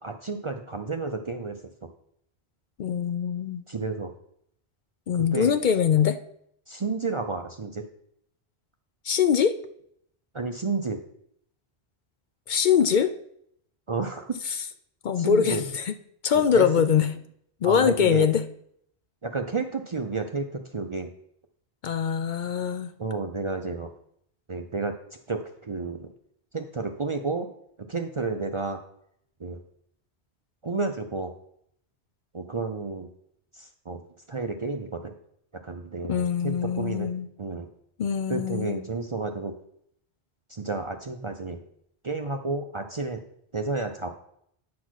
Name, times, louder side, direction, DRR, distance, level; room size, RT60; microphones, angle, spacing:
voice 1, 0.0-1.9 3.7-4.1 5.1-5.6 6.7-7.9 10.3-11.0 13.9-14.4 15.2-15.6 16.3-16.7 17.6-18.3 19.2-21.1 23.0-23.9 24.5-24.9 25.3-26.1 26.5-27.5 27.8-28.8 29.4-29.6 30.6-31.3 32.3-33.1 33.5-34.0 34.3-35.1 35.5-37.1 37.4-37.7 38.3-39.5 40.5-41.6 42.0-43.2 43.5-44.1, right 3 dB, 40° right, 5 dB, 0.5 m, -31 dB
voice 2, 2.8-3.6 5.1-6.2 9.0-9.5 12.5-13.1 15.0-15.9 16.2-17.1 17.6-18.4 21.8-22.9 36.1-37.3 38.0-38.8, left 8 dB, 55° left, 10 dB, 0.6 m, -23 dB
9.4 x 4.1 x 6.3 m, 0.70 s
omnidirectional pair, 1.1 m